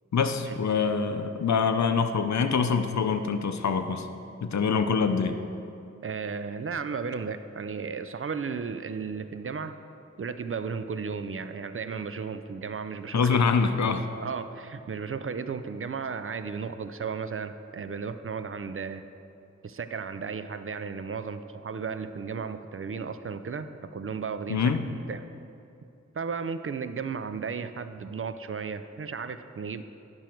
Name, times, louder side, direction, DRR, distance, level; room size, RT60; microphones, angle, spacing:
voice 1, 0.1-4.1 4.4-5.4 13.1-14.0 24.5-24.8, left 5 dB, 70° left, 8 dB, 0.6 m, -25 dB
voice 2, 6.0-9.8 10.2-13.4 14.2-19.0 19.6-24.7 25.1-25.2 26.1-29.8, right 5 dB, 50° right, 11 dB, 0.5 m, -34 dB
10.5 x 6.1 x 4.5 m, 2.6 s
cardioid pair, 45°, 29 cm